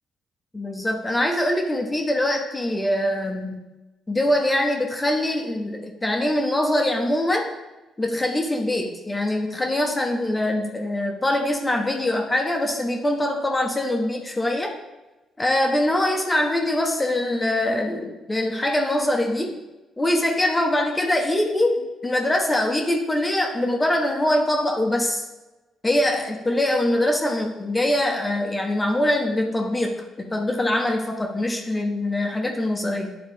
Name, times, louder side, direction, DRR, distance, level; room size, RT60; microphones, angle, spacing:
voice 1, 0.5-3.6 4.1-7.5 8.0-14.8 15.4-19.6 20.0-25.2 25.8-33.2, left 1 dB, 15° left, 2 dB, 1.0 m, -23 dB
9.4 x 3.9 x 3.6 m, 1.1 s
cardioid pair, 90°, 0 cm